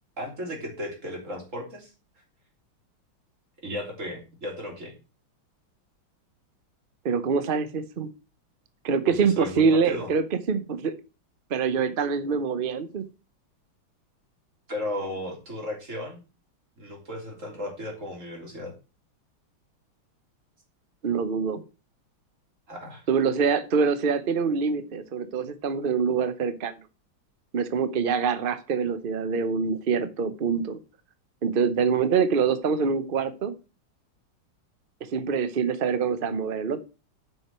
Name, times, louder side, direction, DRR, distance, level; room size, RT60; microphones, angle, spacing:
voice 1, 0.2-1.9 3.6-4.9 9.1-10.1 14.7-16.2 16.8-18.7 22.7-23.0, left 1 dB, 35° right, 0 dB, 3.7 m, -35 dB
voice 2, 7.0-8.1 8.8-10.9 11.5-13.0 21.0-21.6 23.1-26.8 27.5-30.8 31.4-33.5 35.1-36.8, right 5 dB, 80° right, 12 dB, 0.4 m, -25 dB
7.6 x 6.2 x 6.0 m, 0.31 s
omnidirectional pair, 2.3 m